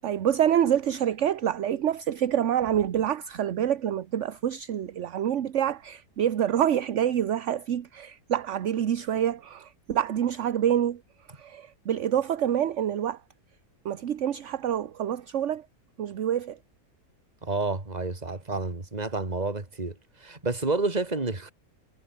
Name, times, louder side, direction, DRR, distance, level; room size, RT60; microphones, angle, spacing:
voice 1, 0.0-11.0 11.3-13.2 13.8-15.6 16.0-16.6, right 10 dB, 60° right, 1.2 m, -27 dB
voice 2, 17.4-21.5, right 3 dB, 25° right, 3.0 m, -30 dB
omnidirectional pair, 1.6 m